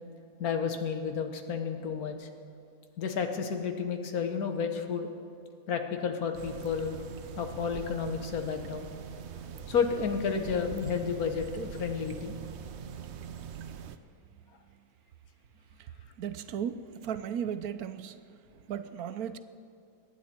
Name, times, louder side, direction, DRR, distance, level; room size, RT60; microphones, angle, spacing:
voice 1, 0.4-2.3 3.0-5.1 5.7-7.0 7.4-8.9 9.5-12.4, left 6 dB, 85° left, 6 dB, 1.6 m, -31 dB
sound 1, 6.3-14.0, right 7 dB, 60° right, 0.8 m, -43 dB
voice 2, 16.2-18.1 18.7-19.4, right 8 dB, 85° right, 12 dB, 1.2 m, -35 dB
23.0 x 9.6 x 4.4 m, 2.5 s
omnidirectional pair, 1.5 m